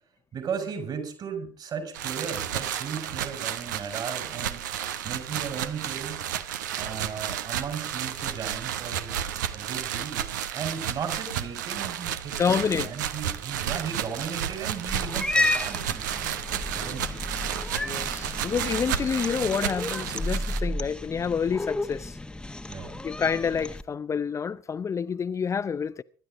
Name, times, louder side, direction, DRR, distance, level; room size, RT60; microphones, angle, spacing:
voice 1, 0.3-4.6 5.0-6.3 6.8-9.2 9.5-10.2 10.5-16.4 16.7-17.2 22.7-23.0, right 6 dB, 45° right, 5.1 m, -36 dB
sound 1, 1.9-20.6, right 10 dB, 75° right, 1.0 m, -32 dB
voice 2, 12.4-12.9 17.8-22.2 23.0-26.0, left 6 dB, 30° left, 0.6 m, -28 dB
Cat, 14.8-23.8, left 2 dB, 10° left, 1.1 m, -32 dB
24.5 x 12.0 x 3.8 m
figure-of-eight pair, 55°, 10 cm